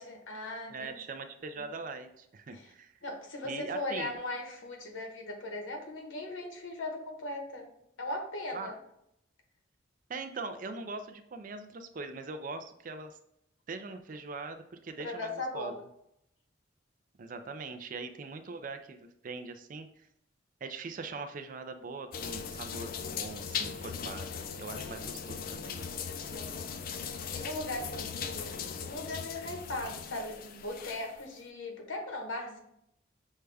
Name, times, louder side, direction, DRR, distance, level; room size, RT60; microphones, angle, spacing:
voice 1, 0.0-1.0 2.5-2.7 3.0-7.7 8.0-8.8 15.0-15.7 24.7-25.0 26.1-32.6, left 2 dB, 85° left, 2 dB, 1.0 m, -39 dB
voice 2, 0.7-3.0 3.4-4.2 8.5-8.7 10.1-13.2 13.7-15.7 17.2-19.0 19.2-20.1 20.6-25.8, right 3 dB, 45° right, 7 dB, 0.4 m, -41 dB
sound 1, 22.1-31.3, left 6 dB, 45° left, 0.3 m, -39 dB
6.4 x 2.3 x 3.3 m, 0.77 s
head